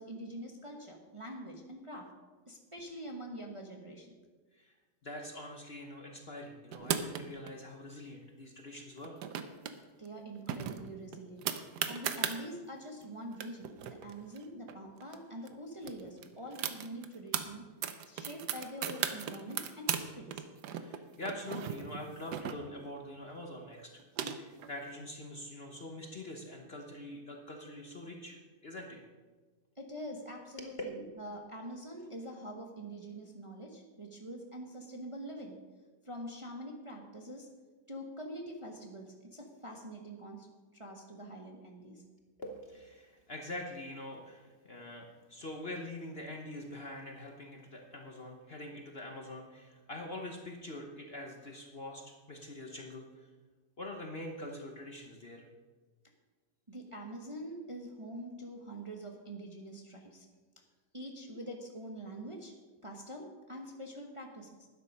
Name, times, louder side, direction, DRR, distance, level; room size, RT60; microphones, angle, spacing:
voice 1, 0.0-2.1 2.5-4.1 10.0-11.5 11.9-17.6 18.1-20.4 29.8-35.6 36.0-37.5 37.9-40.5 40.7-42.0 56.7-60.3 60.9-62.5 62.8-64.7, right 1 dB, 20° right, 1 dB, 1.0 m, -45 dB
voice 2, 5.0-9.2 20.7-24.0 24.3-29.0 42.4-53.3 53.8-55.4, left 1 dB, 40° left, 2 dB, 1.1 m, -44 dB
sound 1, 6.7-7.5 9.0-9.7 10.0-10.1 10.5-12.4 13.0-13.1 13.3-15.2 15.5-15.6 15.8-17.4 17.8-20.0 20.3-22.9 23.7-24.7, right 9 dB, 70° right, 1.3 m, -37 dB
12.0 x 9.7 x 5.3 m, 1.4 s
omnidirectional pair, 1.9 m